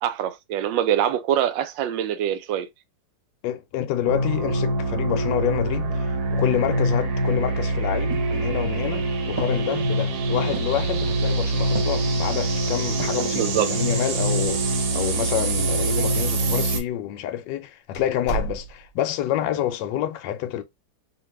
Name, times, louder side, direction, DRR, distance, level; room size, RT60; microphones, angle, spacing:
voice 1, 0.0-2.7 13.3-13.7, right 10 dB, 90° right, 1.3 m, -24 dB
voice 2, 3.4-20.6, left 11 dB, 80° left, 1.2 m, -28 dB
sound 1, 4.0-16.8, right 2 dB, 65° right, 1.2 m, -24 dB
sound 2, 7.6-8.9 9.4-9.9 10.5-10.9 11.7-12.2 13.0-13.4 13.9-14.5 14.8-14.9, right 3 dB, 30° right, 0.5 m, -36 dB
sound 3, 15.0-15.1 15.8-15.9 16.7-16.9 17.3-17.4 17.9-19.1, right 3 dB, 60° left, 1.1 m, -33 dB
2.8 x 2.6 x 3.1 m
omnidirectional pair, 2.0 m